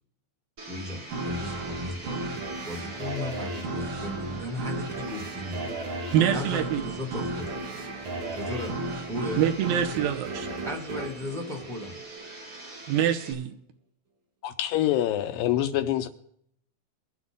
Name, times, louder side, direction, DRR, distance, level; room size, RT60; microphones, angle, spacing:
Domestic sounds home sounds, 0.6-13.3, right 2 dB, 30° right, 1.9 m, -44 dB
voice 1, 0.7-2.3 2.6-5.7 6.3-7.6 8.3-8.8 9.1-9.5 10.6-12.0, left 2 dB, ahead, 0.9 m, -36 dB
sound 1, 1.1-12.3, right 2 dB, 55° right, 3.1 m, -34 dB
voice 2, 6.1-6.8 9.4-10.5 12.9-13.5, right 10 dB, 80° right, 2.7 m, -25 dB
voice 3, 14.4-16.1, left 12 dB, 80° left, 2.2 m, -25 dB
23.5 x 8.0 x 3.7 m
omnidirectional pair, 4.3 m